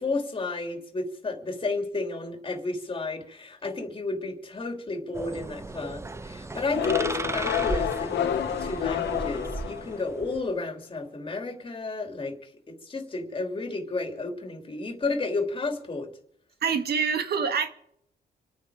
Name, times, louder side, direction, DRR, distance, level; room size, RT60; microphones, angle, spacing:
voice 1, 0.0-16.1, left 3 dB, 30° left, 3.1 m, -32 dB
sound 1, 5.1-10.5, right 2 dB, 15° right, 0.7 m, -36 dB
sound 2, 6.7-10.3, left 9 dB, 85° left, 1.7 m, -29 dB
voice 2, 16.6-17.7, right 6 dB, 65° right, 1.8 m, -26 dB
28.0 x 9.5 x 5.0 m
cardioid pair, 125°, 18 cm